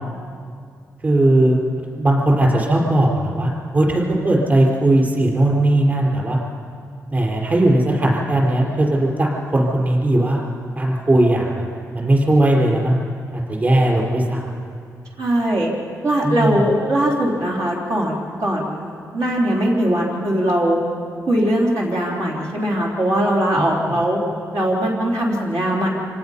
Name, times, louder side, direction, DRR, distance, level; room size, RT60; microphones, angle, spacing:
voice 1, 1.0-1.6 2.0-6.4 7.1-10.4 10.8-11.7 11.9-13.0 13.3-14.6 16.2-16.6 23.6-23.9, right 1 dB, 30° right, -2 dB, 4.6 m, -18 dB
voice 2, 15.2-15.7 16.0-20.8 21.3-24.2 24.5-25.9, right 1 dB, 75° right, -3 dB, 3.5 m, -20 dB
26.0 x 18.5 x 5.7 m, 2.3 s
cardioid pair, 115°, 6 cm